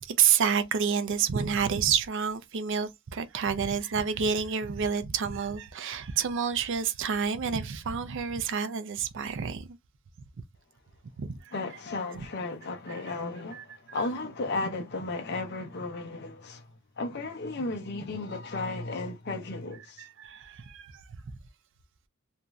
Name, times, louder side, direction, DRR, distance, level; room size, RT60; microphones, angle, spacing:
voice 1, 0.0-9.8 11.2-11.5 12.2-12.3 13.5-13.6 20.0-21.2, right 7 dB, 60° right, 0.4 m, -29 dB
voice 2, 11.5-20.1, left 3 dB, 55° left, 0.6 m, -34 dB
3.0 x 2.5 x 2.3 m
head